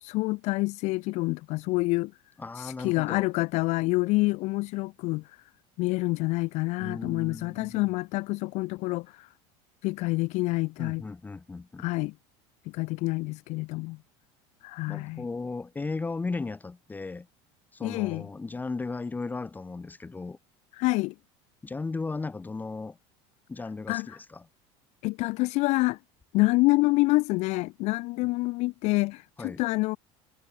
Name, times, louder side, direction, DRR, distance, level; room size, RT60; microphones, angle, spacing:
voice 1, 0.0-2.1 2.6-5.4 5.8-9.3 9.8-11.0 11.8-12.1 12.7-14.0 14.6-15.2 17.8-18.3 20.7-21.1 23.9-24.2 25.0-26.0 26.3-30.0, left 22 dB, 55° left, 0.5 m, -27 dB
voice 2, 2.4-3.2 6.8-7.9 10.8-11.9 14.9-17.3 17.7-20.4 21.6-23.0 23.5-24.4 29.4-29.6, left 3 dB, 10° left, 1.3 m, -36 dB
cardioid pair, 140°, 14 cm